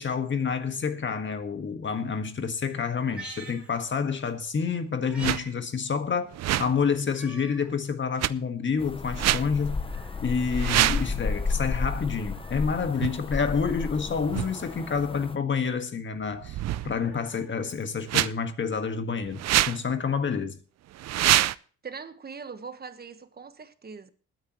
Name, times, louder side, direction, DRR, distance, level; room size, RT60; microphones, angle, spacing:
voice 1, 0.0-6.3 6.6-9.9 10.2-16.6 16.8-20.6, left 6 dB, 40° left, 1.7 m, -28 dB
Meow, 3.0-4.3 4.7-5.5 5.9-6.0 7.0-7.7 8.2-8.3 9.3-10.3 11.9-12.9 14.2-15.0 16.5-18.2 19.4-19.5, right 2 dB, 5° right, 5.1 m, -48 dB
sound 1, 5.2-5.4 6.3-6.8 8.2-8.3 9.1-9.4 10.5-11.1 13.0-13.1 14.3-14.5 16.4-17.1 18.1-18.3 19.4-19.8 20.9-21.6, right 13 dB, 60° right, 0.5 m, -25 dB
sound 2, 8.8-15.4, left 4 dB, 20° left, 0.8 m, -32 dB
voice 2, 21.8-24.1, right 5 dB, 30° right, 1.3 m, -41 dB
21.5 x 9.4 x 3.0 m
cardioid pair, 90°, 30 cm